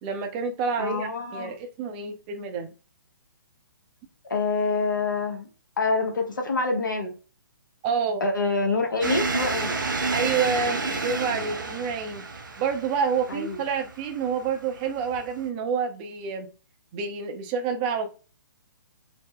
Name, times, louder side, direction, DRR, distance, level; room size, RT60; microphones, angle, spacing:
voice 1, 0.0-2.7 7.8-8.2 10.1-12.2 12.6-16.5 16.9-18.1, right 6 dB, 25° right, 0.5 m, -28 dB
voice 2, 0.8-1.5 4.3-5.5 5.8-7.1 8.2-9.8 13.3-13.6, left 3 dB, 70° left, 0.9 m, -26 dB
sound 1, 9.0-15.5, right 3 dB, 70° right, 0.6 m, -30 dB
2.9 x 2.0 x 3.6 m
figure-of-eight pair, 130°, 11 cm